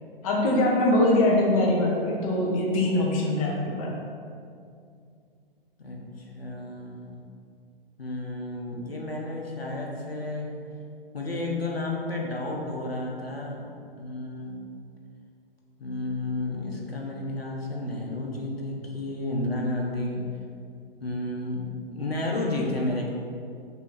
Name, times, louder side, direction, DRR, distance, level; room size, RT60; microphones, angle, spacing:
voice 1, 0.2-3.9, left 1 dB, 35° left, -1 dB, 1.1 m, -23 dB
voice 2, 5.8-7.1 8.0-10.5 11.1-14.6 15.8-20.3 21.0-23.1, left 2 dB, 90° left, -1 dB, 1.2 m, -32 dB
5.9 x 2.9 x 5.4 m, 2.4 s
figure-of-eight pair, 120°, 30 cm